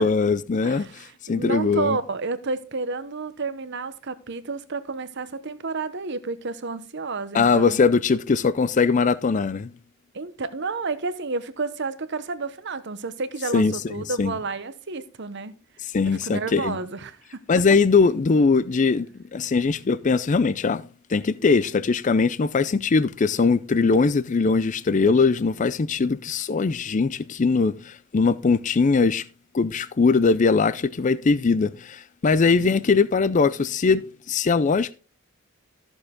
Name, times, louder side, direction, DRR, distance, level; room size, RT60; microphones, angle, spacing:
voice 1, 0.0-2.0 7.3-9.7 13.5-14.3 15.8-16.8 17.5-19.1 19.3-20.8 21.1-29.2 29.5-34.9, left 4 dB, 35° left, 0.4 m, -21 dB
voice 2, 0.6-7.8 10.1-15.5 16.0-17.4 32.6-32.7, right 4 dB, 55° right, 1.0 m, -31 dB
13.5 x 7.1 x 3.7 m
head